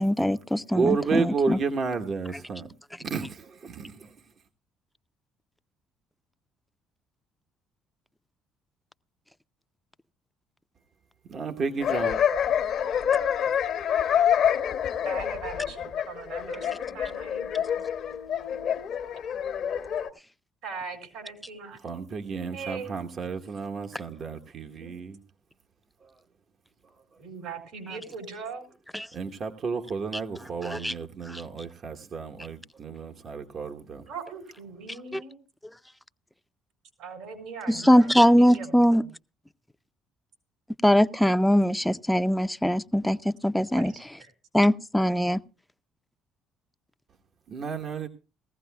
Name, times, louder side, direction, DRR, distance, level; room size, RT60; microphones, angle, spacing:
voice 1, 0.0-1.6 28.9-29.1 30.6-30.9 31.3-31.4 35.1-35.2 37.7-39.0 40.8-43.9 44.5-45.4, equal, 5° left, 0.5 m, -22 dB
voice 2, 0.7-2.7 3.0-4.1 11.3-12.2 21.8-25.2 26.0-26.1 29.1-34.0 47.5-48.1, right 5 dB, 50° right, 1.0 m, -31 dB
sound 1, 11.8-20.1, left 9 dB, 60° left, 1.0 m, -27 dB
voice 3, 15.0-17.5 20.6-21.8 22.5-22.9 24.4-24.9 27.2-28.7 34.1-35.4 37.0-39.1 43.7-44.3, right 5 dB, 80° right, 4.4 m, -40 dB
19.0 x 15.0 x 2.3 m
hypercardioid pair, 65°, 0 cm